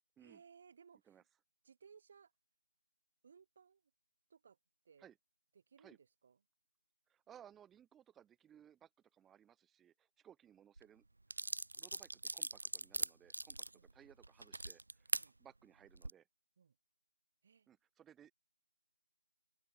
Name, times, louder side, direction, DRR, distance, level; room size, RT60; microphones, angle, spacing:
voice 1, 0.2-1.2 1.6-2.3 3.2-3.8 4.3-4.6 4.8-5.1 5.5-6.4 13.7-13.9 15.1-15.4 16.6-16.8 17.4-17.8, right 6 dB, 30° right, 2.0 m, -63 dB
voice 2, 7.1-11.0 11.7-13.6 13.9-15.1 15.4-16.2 17.7-18.3, right 9 dB, 5° right, 0.6 m, -62 dB
sound 1, 10.8-10.9 11.3-15.3 15.8-16.1, right 2 dB, 60° right, 0.4 m, -41 dB
open air
figure-of-eight pair, 160°, 0 cm